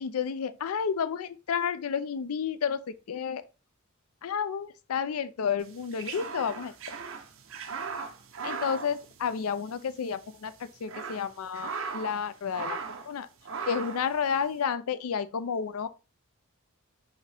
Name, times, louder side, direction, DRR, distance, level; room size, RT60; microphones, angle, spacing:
voice 1, 0.0-2.8 3.1-3.4 4.2-6.7 8.4-10.5 10.8-12.8 13.1-13.3 13.7-15.9, left 7 dB, 85° left, 0.4 m, -31 dB
sound 1, 5.7-9.8 10.0-10.1 10.6-12.2 12.5-13.1 13.4-14.1, right 5 dB, 65° right, 0.7 m, -38 dB
5.7 x 2.7 x 3.4 m
head